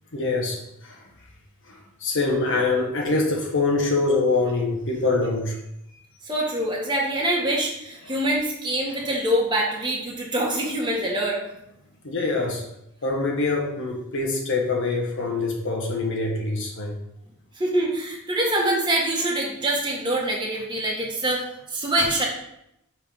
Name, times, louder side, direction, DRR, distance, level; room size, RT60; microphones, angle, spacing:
voice 1, 0.1-0.6 0.8-1.0 2.0-5.5 12.0-12.6 13.0-17.0, left 3 dB, 60° left, -1 dB, 1.4 m, -24 dB
voice 2, 6.2-11.4 17.5-22.2, right 1 dB, 20° right, -4 dB, 1.7 m, -25 dB
6.2 x 5.1 x 5.0 m, 0.80 s
head